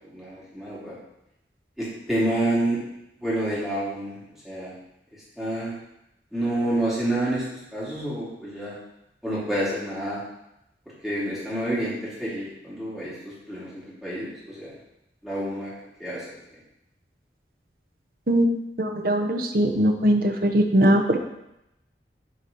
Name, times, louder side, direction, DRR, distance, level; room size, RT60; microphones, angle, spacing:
voice 1, 0.1-0.9 1.8-2.8 3.2-4.2 4.4-4.7 5.4-5.7 6.3-7.4 7.7-8.8 9.2-10.2 11.0-14.7 15.2-15.7 16.0-16.3, right 1 dB, ahead, -9 dB, 2.9 m, -28 dB
voice 2, 18.8-21.2, right 1 dB, 55° right, 4 dB, 0.9 m, -20 dB
8.7 x 4.6 x 5.4 m, 0.85 s
head